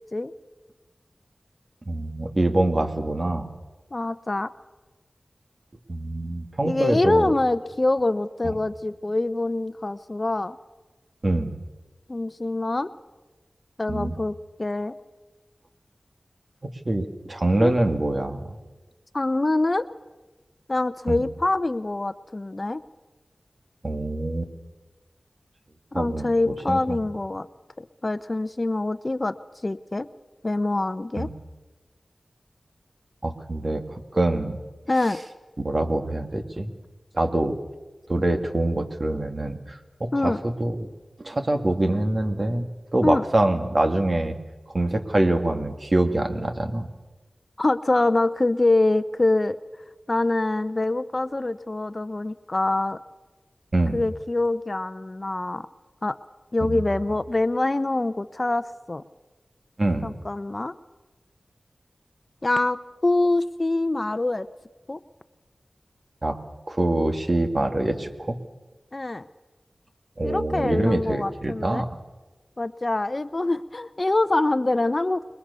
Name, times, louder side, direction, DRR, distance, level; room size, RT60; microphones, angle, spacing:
voice 1, 1.9-3.5 5.9-7.3 8.4-8.5 11.2-11.6 13.9-14.2 16.9-18.6 21.1-21.2 23.8-24.5 25.9-26.3 26.7-27.0 31.2-31.3 33.2-33.8 34.1-34.6 35.6-36.7 37.1-37.6 38.1-40.3 40.6-40.9 41.2-42.6 42.9-44.4 44.7-46.9 53.7-54.0 56.7-56.8 59.8-60.1 66.2-66.4 66.7-68.4 70.2-71.9, right 1 dB, 50° right, 6 dB, 2.3 m, -24 dB
voice 2, 3.9-4.5 6.6-10.6 12.1-12.9 13.8-14.9 17.6-17.7 19.1-19.9 20.7-22.8 25.9-27.5 27.8-29.3 29.6-30.1 30.4-31.3 34.9-35.2 40.1-40.4 43.0-43.2 47.6-49.6 50.1-53.0 53.9-55.7 56.0-56.2 56.5-59.0 60.0-60.7 62.4-64.5 64.9-65.0 68.9-69.3 70.2-71.8 72.6-75.2, left 2 dB, 40° left, 13 dB, 0.8 m, -25 dB
27.5 x 22.0 x 7.0 m, 1.2 s
cardioid pair, 45°, 0 cm